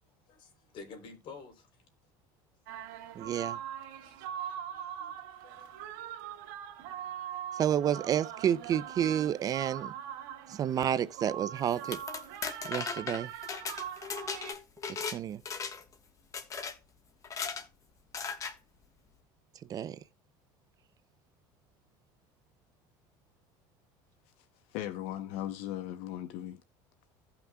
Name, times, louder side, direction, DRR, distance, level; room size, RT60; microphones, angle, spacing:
voice 1, 0.3-1.9 4.0-5.7, left 4 dB, 50° left, 3.7 m, -51 dB
sound 1, 2.7-14.5, right 10 dB, 80° right, 1.7 m, -42 dB
voice 2, 3.2-3.6 7.5-9.9 10.5-12.0 12.7-13.3 15.1-15.4 19.7-20.0, right 9 dB, 35° right, 0.5 m, -30 dB
sound 2, 11.7-15.2 15.5-15.9 16.3-16.7 17.2-17.6 18.1-18.5, left 6 dB, 30° left, 1.4 m, -37 dB
voice 3, 24.4-26.6, left 12 dB, 70° left, 0.8 m, -38 dB
16.5 x 5.9 x 2.3 m
cardioid pair, 130°, 10 cm